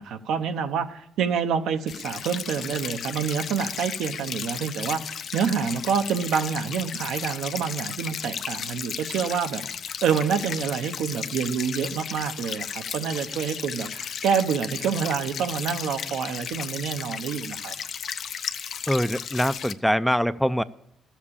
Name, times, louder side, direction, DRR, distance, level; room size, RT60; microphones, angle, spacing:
voice 1, 0.0-9.6 10.0-17.7, right 7 dB, 85° right, 7 dB, 0.9 m, -27 dB
sound 1, 1.9-19.7, left 7 dB, 60° left, 0.6 m, -34 dB
voice 2, 18.9-20.6, equal, ahead, 14 dB, 0.4 m, -23 dB
13.5 x 7.3 x 8.7 m, 0.78 s
cardioid pair, 90°, 0 cm